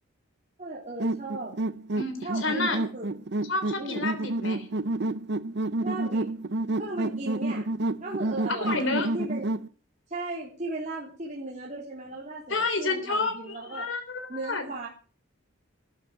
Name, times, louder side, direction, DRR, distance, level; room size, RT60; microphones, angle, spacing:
voice 1, 0.6-1.5 2.2-3.1 3.8-4.1 5.8-6.3 6.8-7.7 8.0-9.7 10.1-13.9 14.3-14.9, right 2 dB, 35° right, -4 dB, 3.6 m, -36 dB
sound 1, 1.0-9.7, right 2 dB, 50° right, 0.7 m, -29 dB
voice 2, 2.0-2.8 3.5-4.7 8.5-9.1 12.5-14.7, left 3 dB, 60° left, 6 dB, 3.6 m, -29 dB
14.0 x 11.5 x 7.7 m, 0.39 s
head